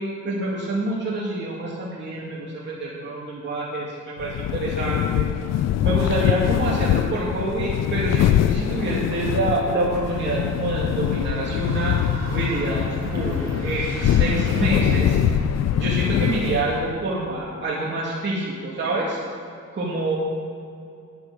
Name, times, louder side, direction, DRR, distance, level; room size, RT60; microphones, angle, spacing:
voice 1, 0.0-5.3 5.8-12.0 12.3-12.8 13.1-15.2 15.8-19.2 19.7-20.2, right 2 dB, 35° right, -7 dB, 2.5 m, -27 dB
sound 1, 4.2-16.9, left 11 dB, 60° left, 0.5 m, -23 dB
sound 2, 9.9-16.8, equal, 60° right, 3.2 m, -32 dB
10.5 x 9.6 x 6.3 m, 2.5 s
cardioid pair, 90°, 30 cm